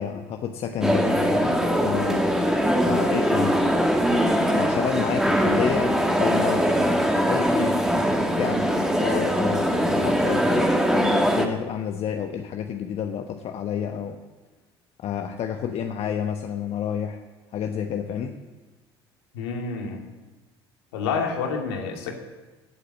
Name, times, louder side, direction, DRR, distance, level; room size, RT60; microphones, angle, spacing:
voice 1, 0.0-3.8 4.5-7.8 8.3-14.2 15.0-17.2 17.5-18.3, left 8 dB, 45° left, 5 dB, 1.2 m, -30 dB
sound 1, 0.8-11.5, equal, 5° right, 2.1 m, -22 dB
voice 2, 19.3-20.1 20.9-22.1, left 5 dB, 65° left, 2 dB, 2.4 m, -28 dB
16.5 x 8.2 x 8.3 m, 1.2 s
figure-of-eight pair, 55°, 14 cm